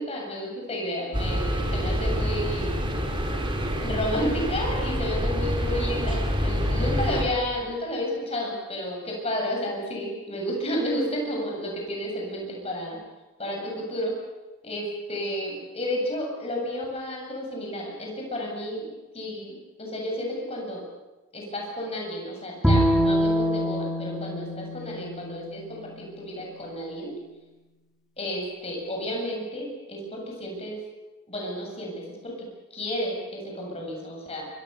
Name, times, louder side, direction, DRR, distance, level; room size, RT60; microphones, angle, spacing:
voice 1, 0.0-2.8 3.8-13.0 13.4-14.1 14.6-20.8 21.3-27.1 28.2-30.8 31.3-34.5, equal, 25° left, -1 dB, 7.7 m, -31 dB
sound 1, 1.1-7.2, equal, 20° right, 3.9 m, -27 dB
Bowed string instrument, 22.6-25.9, equal, ahead, 3.7 m, -25 dB
27.0 x 25.0 x 7.0 m, 1.1 s
head